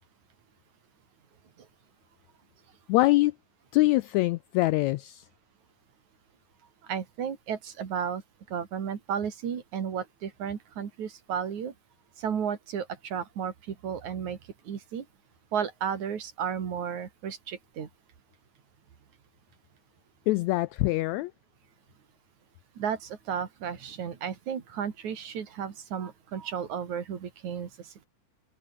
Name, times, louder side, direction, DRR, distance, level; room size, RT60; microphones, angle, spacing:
voice 1, 2.9-3.3 3.7-5.2 20.3-21.3, left 19 dB, 80° left, 1.7 m, -24 dB
voice 2, 6.8-8.2 8.5-11.7 12.2-14.4 14.7-15.1 15.5-17.9 22.8-28.1, right 7 dB, 65° right, 3.7 m, -33 dB
omnidirectional pair, 3.7 m